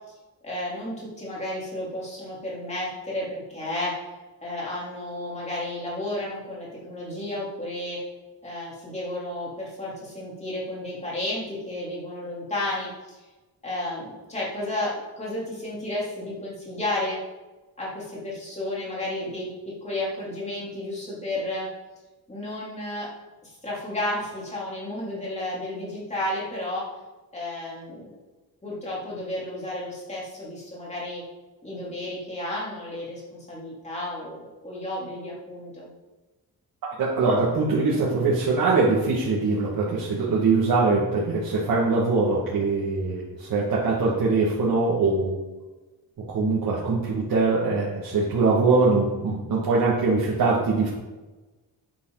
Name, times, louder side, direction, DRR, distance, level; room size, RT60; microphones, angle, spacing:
voice 1, 0.4-4.1 4.4-8.0 8.4-12.9 13.6-17.2 17.8-19.5 19.8-21.7 22.3-23.1 23.4-26.9 27.3-28.1 28.6-31.2 31.6-35.9, left 1 dB, 20° left, -6 dB, 3.8 m, -32 dB
voice 2, 37.0-45.4 46.3-50.9, right 3 dB, 60° right, -6 dB, 2.4 m, -22 dB
11.0 x 9.4 x 4.2 m, 1.2 s
wide cardioid pair, 175°, 38 cm